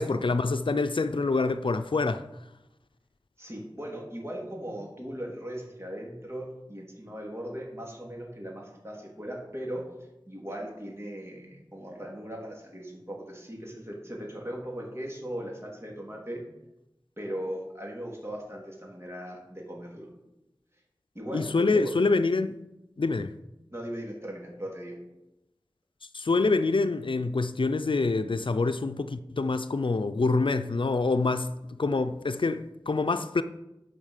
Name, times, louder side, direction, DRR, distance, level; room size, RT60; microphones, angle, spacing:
voice 1, 0.0-2.3 21.3-22.6 23.0-23.3 26.1-33.4, left 3 dB, 80° left, 0.5 m, -26 dB
voice 2, 3.4-16.4 17.2-20.1 21.2-21.9 23.7-25.0, equal, 30° right, 3.4 m, -38 dB
11.0 x 5.8 x 6.6 m
wide cardioid pair, 45°, 9 cm